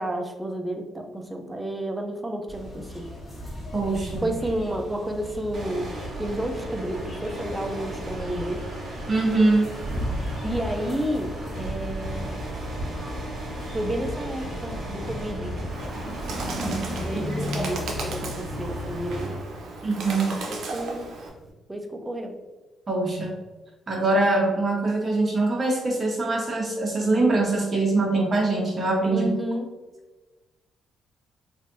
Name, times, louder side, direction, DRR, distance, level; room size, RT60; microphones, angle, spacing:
voice 1, 0.0-3.1 4.2-5.9 6.2-8.6 10.3-12.6 13.7-15.6 17.0-19.4 20.3-21.1 21.7-22.3 29.1-29.7, right 1 dB, 10° right, 4 dB, 0.5 m, -31 dB
sound 1, 2.5-19.2, equal, 15° left, 1.4 m, -35 dB
voice 2, 3.7-4.2 9.1-9.7 16.6-16.8 19.8-20.3 22.9-23.3 23.9-29.3, right 2 dB, 35° right, -1 dB, 0.9 m, -23 dB
sound 2, 5.5-21.5, right 1 dB, 55° right, 1.3 m, -38 dB
Bird, 15.7-21.3, right 3 dB, 70° right, 0.6 m, -36 dB
3.2 x 2.6 x 2.6 m, 1.2 s
cardioid pair, 90°, 0 cm